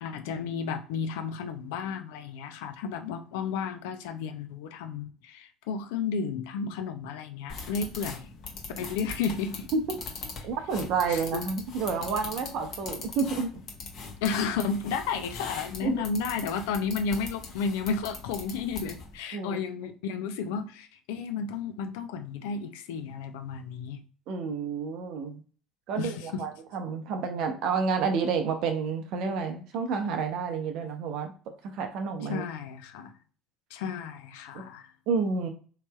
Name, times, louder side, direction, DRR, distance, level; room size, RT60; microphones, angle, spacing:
voice 1, 0.0-8.3 8.8-9.7 11.1-11.4 14.2-24.0 26.0-26.4 32.3-33.1 33.7-34.9, left 5 dB, 70° left, 0.4 m, -32 dB
sound 1, 7.5-19.2, left 4 dB, 55° left, 0.9 m, -41 dB
voice 2, 10.4-13.5 15.8-16.0 19.3-19.6 24.3-25.4 25.9-31.3 31.6-32.4 34.5-34.6 35.1-35.5, right 5 dB, 60° right, 0.6 m, -30 dB
3.1 x 2.9 x 2.2 m
hypercardioid pair, 65°, 0 cm